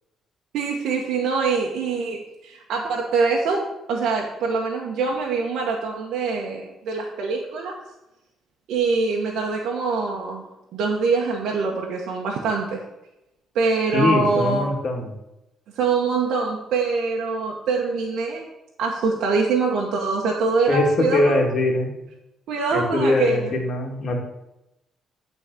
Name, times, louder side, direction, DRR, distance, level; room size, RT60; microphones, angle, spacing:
voice 1, 0.5-7.8 8.7-10.5 10.7-12.8 13.5-14.7 15.7-18.4 18.8-21.3 22.5-23.5, right 4 dB, 80° right, -1 dB, 1.1 m, -24 dB
voice 2, 13.9-15.1 20.7-21.9 22.7-24.2, left 2 dB, 55° left, 1 dB, 1.9 m, -21 dB
9.0 x 4.0 x 5.9 m, 0.91 s
cardioid pair, 90°, 0 cm